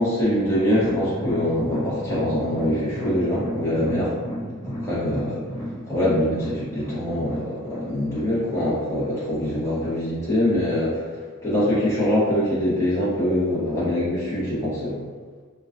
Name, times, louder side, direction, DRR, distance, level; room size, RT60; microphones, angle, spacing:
voice 1, 0.0-4.2 4.6-15.0, left 1 dB, 15° left, -11 dB, 1.0 m, -24 dB
sound 1, 0.6-9.9 10.2-10.4 10.7-10.8, equal, 50° left, 0.8 m, -33 dB
3.9 x 2.3 x 2.4 m, 1.5 s
head